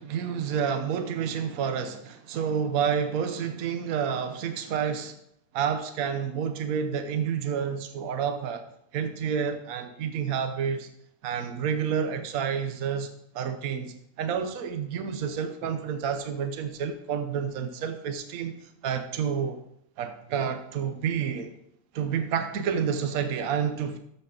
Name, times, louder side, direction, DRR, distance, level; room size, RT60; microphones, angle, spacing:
voice 1, 0.0-5.2 5.5-8.7 8.9-10.9 11.2-19.6 20.0-21.5 21.9-24.0, right 7 dB, 70° right, 8 dB, 1.2 m, -29 dB
13.5 x 6.8 x 3.8 m, 0.76 s
omnidirectional pair, 1.6 m